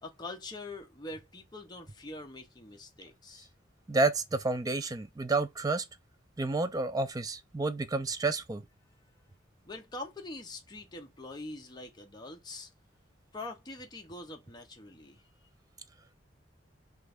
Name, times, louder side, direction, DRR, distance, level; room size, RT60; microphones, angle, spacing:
voice 1, 0.0-3.5 9.6-12.7 13.3-15.2, left 2 dB, 20° left, 0.7 m, -44 dB
voice 2, 3.9-5.8 6.4-8.6, right 3 dB, 20° right, 0.4 m, -30 dB
3.1 x 2.4 x 3.4 m
head